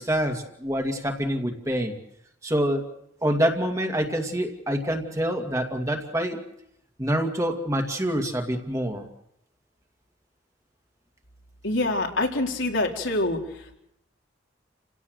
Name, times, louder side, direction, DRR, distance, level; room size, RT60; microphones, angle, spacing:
voice 1, 0.0-1.9 2.4-2.9 3.2-6.4 7.0-9.0, equal, 15° right, 4 dB, 2.4 m, -26 dB
voice 2, 11.6-13.4, left 2 dB, 80° left, 0 dB, 4.3 m, -25 dB
29.0 x 17.5 x 8.1 m, 0.80 s
head